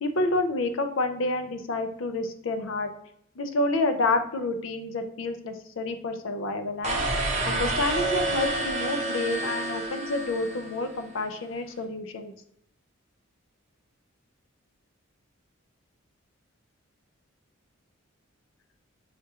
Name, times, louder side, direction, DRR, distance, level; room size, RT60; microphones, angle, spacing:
voice 1, 0.0-2.9 3.4-12.3, left 2 dB, 65° left, 7 dB, 0.5 m, -29 dB
sound 1, 6.8-11.0, right 2 dB, 30° right, 0.7 m, -29 dB
5.8 x 2.4 x 2.7 m, 0.71 s
head